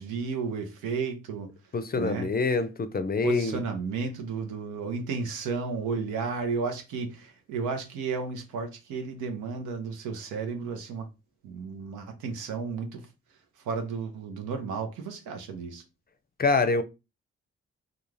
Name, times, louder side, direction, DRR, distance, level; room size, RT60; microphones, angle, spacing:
voice 1, 0.0-1.5 2.0-2.3 3.2-11.1 11.4-13.1 13.6-15.8, right 5 dB, 90° right, 0.6 m, -33 dB
voice 2, 1.7-3.6 16.4-16.8, left 4 dB, 30° left, 0.5 m, -25 dB
2.4 x 2.3 x 3.1 m
supercardioid pair, 40°, 30 cm